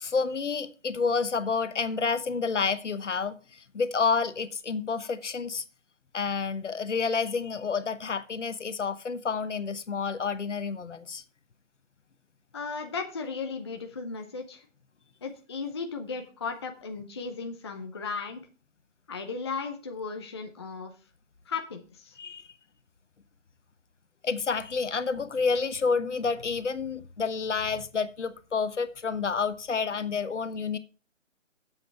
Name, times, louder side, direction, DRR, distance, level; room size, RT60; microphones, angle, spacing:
voice 1, 0.0-5.6 6.1-11.2 22.2-22.5 24.2-30.8, left 5 dB, 65° left, 1.1 m, -29 dB
voice 2, 12.5-14.7 15.2-18.4 19.1-20.9 21.5-22.2, left 4 dB, 20° left, 0.6 m, -36 dB
8.5 x 7.7 x 4.5 m
figure-of-eight pair, 150°, 38 cm